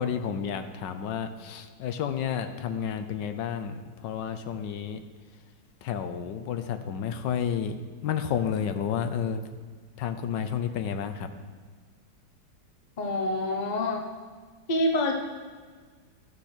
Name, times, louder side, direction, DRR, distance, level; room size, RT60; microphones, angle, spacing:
voice 1, 0.0-3.8 4.0-5.0 5.8-7.8 8.0-9.4 10.0-11.3, left 8 dB, 80° left, 9 dB, 1.4 m, -31 dB
voice 2, 13.0-14.0 14.7-15.1, left 1 dB, 55° left, 4 dB, 0.4 m, -26 dB
13.0 x 6.6 x 4.4 m, 1.5 s
omnidirectional pair, 1.9 m